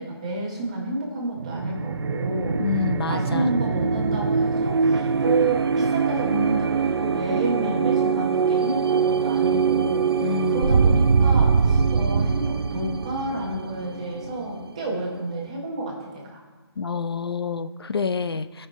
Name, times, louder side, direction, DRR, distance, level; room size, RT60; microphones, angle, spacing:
voice 1, 0.0-2.6 3.1-16.4, right 2 dB, 15° right, -2 dB, 1.1 m, -30 dB
sound 1, 1.4-14.9, right 5 dB, 65° right, 0.4 m, -23 dB
voice 2, 2.6-3.5 10.2-10.7 16.8-18.7, left 5 dB, 65° left, 12 dB, 0.5 m, -27 dB
14.0 x 5.5 x 4.2 m, 1.2 s
hypercardioid pair, 180°, 14 cm